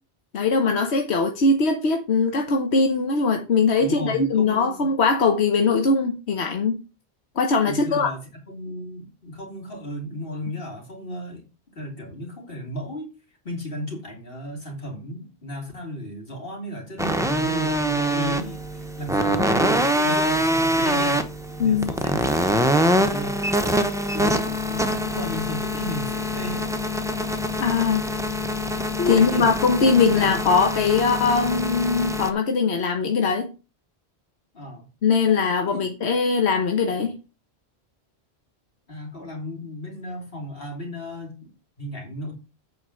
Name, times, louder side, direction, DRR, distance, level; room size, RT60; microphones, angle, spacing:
voice 1, 0.3-6.8 7.4-8.1 21.6-21.9 27.6-28.1 29.0-33.5 35.0-37.2, left 4 dB, 90° left, 1.3 m, -21 dB
voice 2, 3.8-4.9 7.6-11.5 11.7-13.1 13.4-21.2 21.6-23.4 24.1-26.7 29.0-29.5 29.9-30.4 34.5-34.8 35.7-35.9 38.9-42.3, left 1 dB, 60° left, 3.1 m, -35 dB
sound 1, 17.0-32.3, equal, 5° right, 0.8 m, -24 dB
8.8 x 4.7 x 6.4 m
omnidirectional pair, 1.1 m